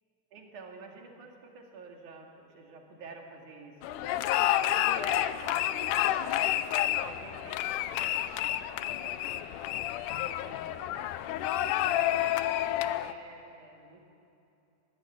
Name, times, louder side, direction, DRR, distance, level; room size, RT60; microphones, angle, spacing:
voice 1, 0.3-4.3 4.6-11.1 11.5-14.0, right 3 dB, 75° right, 1 dB, 3.8 m, -50 dB
sound 1, 3.8-13.1, left 13 dB, 85° left, 2.2 m, -29 dB
21.0 x 16.0 x 8.7 m, 2.8 s
omnidirectional pair, 3.6 m